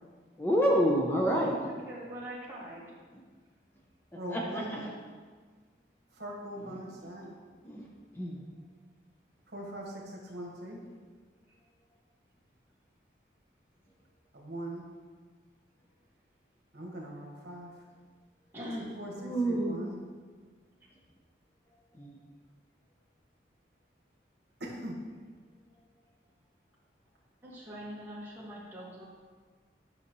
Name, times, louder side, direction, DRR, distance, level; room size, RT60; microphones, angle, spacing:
voice 1, 0.4-1.6 4.3-4.4 4.7-4.9 7.6-7.8 8.1-8.4 19.2-19.8 22.0-22.1, equal, 10° left, -2 dB, 0.6 m, -27 dB
voice 2, 1.7-2.8 18.5-18.9 27.4-29.0, equal, 10° right, -7 dB, 1.7 m, -42 dB
voice 3, 4.1-4.9 6.1-7.3 9.5-10.8 14.3-14.8 16.7-17.8 18.8-20.0 24.6-25.0, right 1 dB, 65° right, -2 dB, 1.4 m, -41 dB
9.8 x 5.8 x 3.0 m, 1.5 s
head